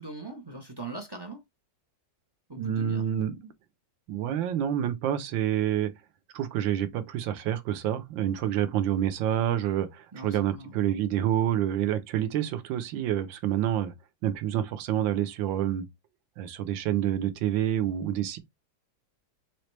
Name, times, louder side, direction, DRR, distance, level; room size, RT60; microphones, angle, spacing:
voice 1, 0.0-1.4 2.5-3.0 10.1-10.8, right 2 dB, 30° right, 0.4 m, -41 dB
voice 2, 2.6-3.4 4.1-5.9 6.3-13.9 14.2-15.9 16.4-18.4, right 11 dB, 85° right, 1.5 m, -28 dB
4.7 x 3.1 x 3.2 m
omnidirectional pair, 2.0 m